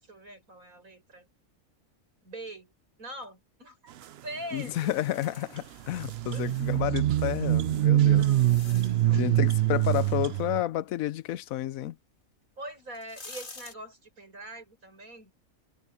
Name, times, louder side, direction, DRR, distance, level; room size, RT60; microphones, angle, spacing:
voice 1, 0.0-1.3 2.2-2.7 3.0-4.9 6.3-6.6 8.0-9.3 12.6-15.3, right 1 dB, 80° right, 7.8 m, -43 dB
voice 2, 4.5-8.3 9.1-12.0, left 13 dB, 80° left, 1.1 m, -31 dB
sound 1, 4.6-6.8 7.6-9.2 12.2-12.3 12.8-13.7, left 3 dB, 35° left, 2.3 m, -49 dB
sound 2, 5.6-5.7 5.9-10.6, right 13 dB, 60° right, 0.7 m, -24 dB
omnidirectional pair, 1.4 m